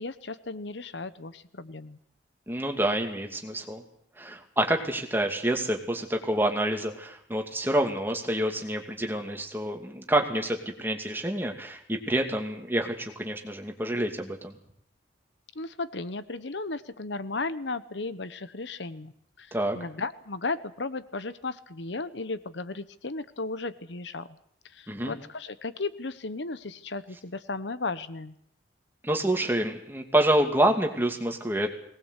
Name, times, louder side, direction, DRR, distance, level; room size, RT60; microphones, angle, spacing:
voice 1, 0.0-2.0 15.5-19.1 19.4-24.3 24.7-28.3, left 3 dB, 75° left, 14 dB, 1.1 m, -35 dB
voice 2, 2.5-3.8 4.2-14.5 19.5-19.8 24.9-25.2 29.0-31.8, right 1 dB, 10° right, 3 dB, 2.6 m, -27 dB
21.5 x 19.0 x 8.3 m, 0.67 s
head